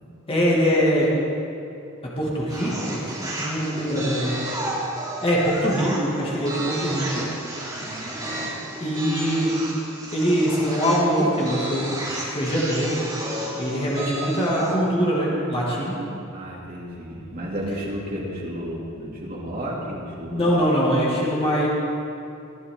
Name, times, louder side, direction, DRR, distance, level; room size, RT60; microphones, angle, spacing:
voice 1, 0.3-1.1 2.2-4.3 5.2-7.3 8.8-9.5 10.1-13.0 13.6-16.0 20.3-21.7, equal, 30° left, -5 dB, 2.5 m, -23 dB
sound 1, 2.5-14.8, right 1 dB, 20° right, 3.3 m, -32 dB
voice 2, 7.6-8.2 16.3-20.5, equal, 45° right, -4 dB, 2.9 m, -33 dB
19.5 x 12.0 x 3.9 m, 2.6 s
head